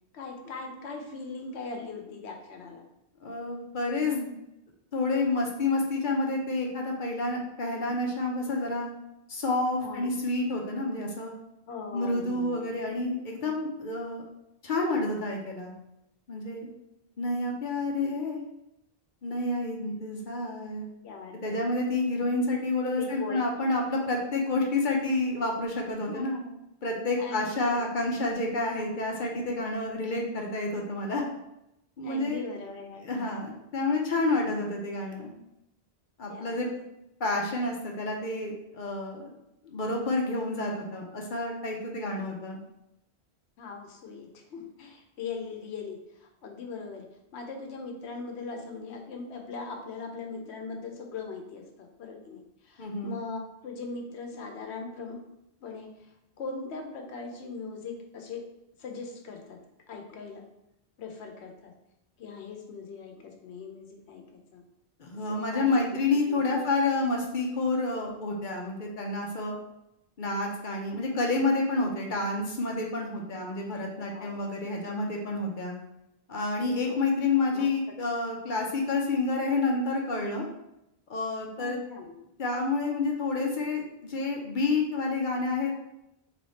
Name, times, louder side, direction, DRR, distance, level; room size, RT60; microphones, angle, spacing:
voice 1, 0.1-2.9 9.8-10.2 11.7-12.6 18.0-18.2 21.0-21.6 22.9-23.5 26.1-26.5 27.2-27.9 32.0-33.5 36.3-36.6 43.6-47.1 47.3-55.2 55.6-58.4 58.8-59.6 59.9-60.4 61.0-61.7 62.2-64.6 65.1-65.9 66.3-66.6 73.9-74.4 76.8-77.0 77.5-77.7 81.6-82.2, left 4 dB, 80° left, 3 dB, 1.0 m, -40 dB
voice 2, 3.2-4.3 4.9-8.9 9.3-11.3 11.9-14.2 14.6-15.7 16.3-16.7 17.2-18.5 19.2-20.9 21.4-26.3 26.8-31.2 32.0-32.4 33.0-35.3 36.2-36.7 37.2-39.3 39.6-42.6 52.8-53.2 65.0-69.6 70.2-75.7 76.3-80.5 81.1-81.8 82.4-85.7, left 2 dB, 55° left, 0 dB, 0.7 m, -29 dB
3.3 x 3.1 x 4.0 m, 0.85 s
omnidirectional pair, 1.1 m